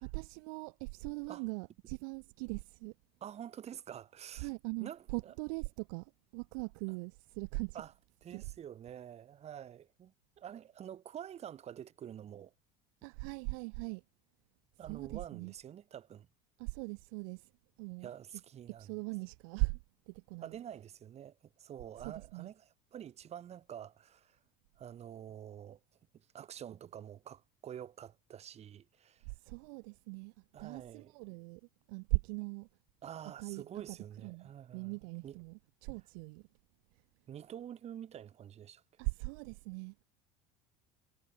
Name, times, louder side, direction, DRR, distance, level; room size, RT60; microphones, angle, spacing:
voice 1, 0.0-2.9 4.4-7.8 8.3-8.5 13.0-14.0 14.9-15.5 16.6-17.5 17.8-18.1 18.7-19.8 20.1-20.6 22.0-22.5 29.3-30.3 30.6-31.6 31.9-32.7 33.4-34.0 34.2-36.5 39.0-40.0, right 34 dB, 80° right, 0.6 m, -40 dB
voice 2, 3.2-4.5 4.8-5.3 7.7-7.9 8.2-12.5 14.8-16.3 18.0-19.0 20.4-24.4 24.8-25.8 26.1-29.3 30.5-31.1 33.0-35.0 35.2-35.4 37.3-38.8, right 10 dB, 40° right, 4.0 m, -48 dB
supercardioid pair, 125°, 18 cm